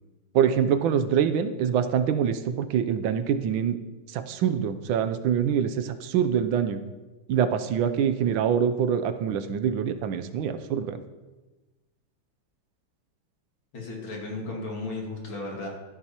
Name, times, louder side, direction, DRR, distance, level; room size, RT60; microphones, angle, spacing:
voice 1, 0.3-3.8 4.1-6.8 7.3-11.0, right 8 dB, 75° right, 10 dB, 1.4 m, -25 dB
voice 2, 13.7-15.7, left 2 dB, 70° left, -1 dB, 3.0 m, -34 dB
14.0 x 11.0 x 2.9 m, 1.2 s
omnidirectional pair, 2.3 m